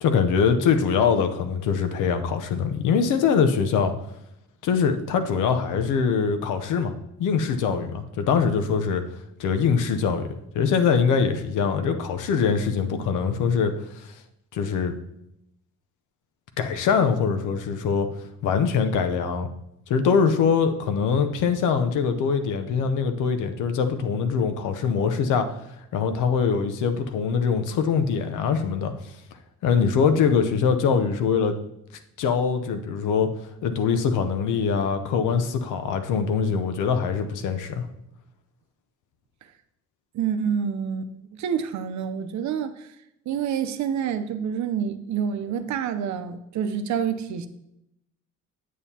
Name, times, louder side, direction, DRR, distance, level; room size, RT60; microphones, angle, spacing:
voice 1, 0.0-3.9 4.6-9.0 9.4-10.3 10.5-14.1 14.5-14.9 16.6-18.1 18.4-19.5 19.9-25.5 25.9-28.9 29.6-31.6 32.2-33.3 33.6-37.9, left 6 dB, 90° left, 0.8 m, -23 dB
voice 2, 40.1-42.9 43.3-47.5, right 7 dB, 70° right, 0.7 m, -28 dB
8.4 x 7.2 x 2.8 m
cardioid pair, 90°, 30 cm